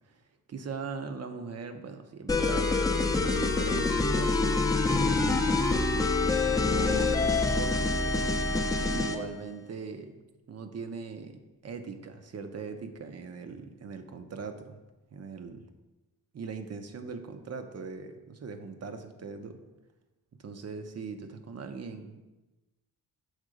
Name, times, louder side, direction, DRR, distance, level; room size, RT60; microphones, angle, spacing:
voice 1, 0.5-4.4 5.2-8.3 8.9-10.2 10.5-14.8 15.1-15.6 16.3-19.6 20.4-22.2, right 5 dB, 45° right, 8 dB, 0.7 m, -40 dB
sound 1, 2.3-9.2, left 3 dB, 10° left, 0.5 m, -26 dB
6.5 x 3.6 x 4.9 m, 1.1 s
cardioid pair, 95°, 36 cm